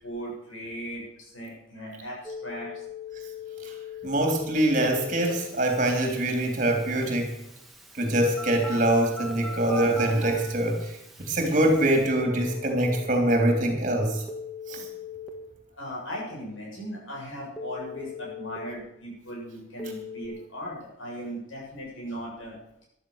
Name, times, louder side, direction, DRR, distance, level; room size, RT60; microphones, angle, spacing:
voice 1, 0.0-2.7 15.8-22.6, equal, 80° left, -2 dB, 7.8 m, -38 dB
Telephone, 2.2-13.1 14.3-15.3 17.6-18.6 19.8-20.3, left 4 dB, ahead, 1.8 m, -40 dB
voice 2, 4.0-7.4 7.9-10.9 11.2-14.2 14.7-14.9, right 1 dB, 40° right, 3 dB, 3.3 m, -24 dB
14.0 x 12.5 x 6.6 m, 0.80 s
head